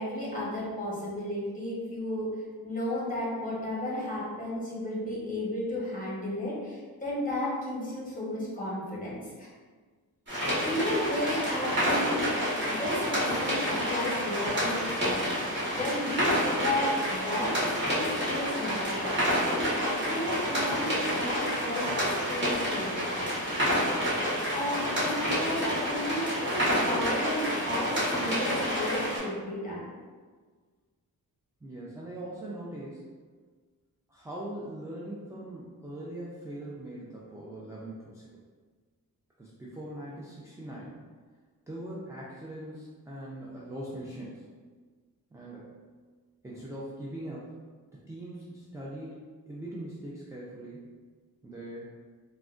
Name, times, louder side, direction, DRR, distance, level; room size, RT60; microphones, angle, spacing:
voice 1, 0.0-2.3 2.6-9.5 10.6-12.3 12.7-15.2 15.7-19.2 19.5-23.1 24.5-29.8, left 1 dB, 20° left, -6 dB, 1.0 m, -33 dB
sound 1, 10.3-29.2, equal, 30° right, 1.3 m, -29 dB
voice 2, 31.6-33.0 34.1-38.3 39.4-40.9 41.7-44.4 45.3-45.7 46.4-47.5 48.1-49.2 49.5-50.8 51.4-51.9, right 1 dB, 10° right, -6 dB, 0.4 m, -41 dB
3.5 x 2.1 x 2.4 m, 1.5 s
wide cardioid pair, 85°, 37 cm